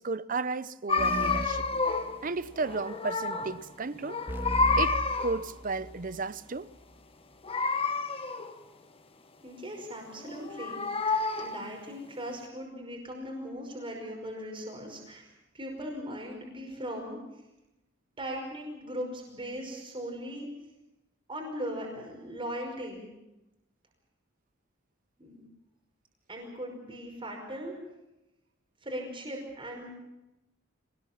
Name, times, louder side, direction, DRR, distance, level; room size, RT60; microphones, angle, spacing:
voice 1, 0.0-1.7 2.2-4.2 4.8-6.7, right 3 dB, 45° right, 0.7 m, -33 dB
sound 1, 0.9-2.2 2.5-3.6 3.9-5.5 7.4-8.6 10.2-11.7, left 3 dB, 30° left, 1.6 m, -29 dB
sound 2, 1.0-2.6 4.3-6.0, equal, 10° right, 2.1 m, -37 dB
voice 2, 9.4-17.4 18.2-20.5 21.3-23.1 25.2-25.4 26.3-27.7 28.8-30.0, equal, 25° right, 5.5 m, -39 dB
26.0 x 19.5 x 7.3 m
head